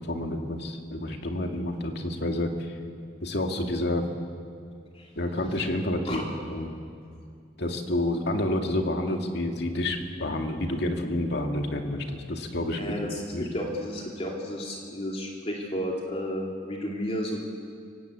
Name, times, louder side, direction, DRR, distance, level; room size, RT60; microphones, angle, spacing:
voice 1, 0.1-2.7 3.2-4.1 5.2-6.7 7.6-12.9 13.3-13.4, left 1 dB, 65° left, 3 dB, 2.4 m, -29 dB
voice 2, 12.8-17.4, equal, 35° left, -1 dB, 2.7 m, -32 dB
26.0 x 18.0 x 8.4 m, 2.3 s
head